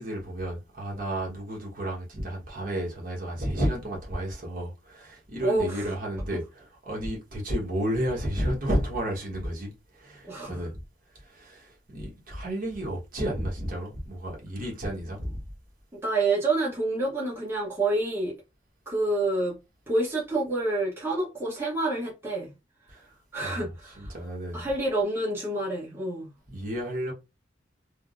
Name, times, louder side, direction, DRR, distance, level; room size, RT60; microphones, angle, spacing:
voice 1, 0.0-9.7 10.0-10.7 11.3-15.4 22.9-23.0 23.4-23.7 24.0-24.7 26.5-27.1, equal, 45° right, 1.1 m, -32 dB
voice 2, 5.4-5.9 10.3-10.7 16.0-18.4 18.9-19.6 19.9-22.5 23.3-24.1 24.5-26.3, right 2 dB, 10° right, 0.9 m, -28 dB
3.2 x 2.0 x 2.5 m
head